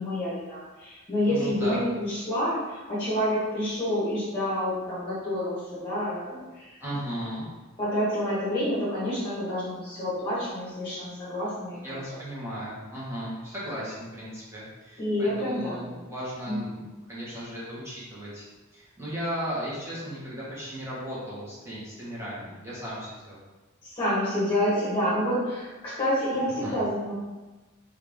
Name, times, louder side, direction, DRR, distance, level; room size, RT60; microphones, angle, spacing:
voice 1, 0.0-6.8 7.8-11.9 15.0-15.9 16.5-16.9 23.8-27.1, left 1 dB, 25° left, -11 dB, 1.4 m, -28 dB
voice 2, 1.3-1.9 6.8-7.5 11.8-16.8 17.1-18.4 18.7-23.4 26.6-26.8, equal, 15° right, -9 dB, 1.4 m, -36 dB
3.5 x 3.5 x 3.5 m, 1.2 s
head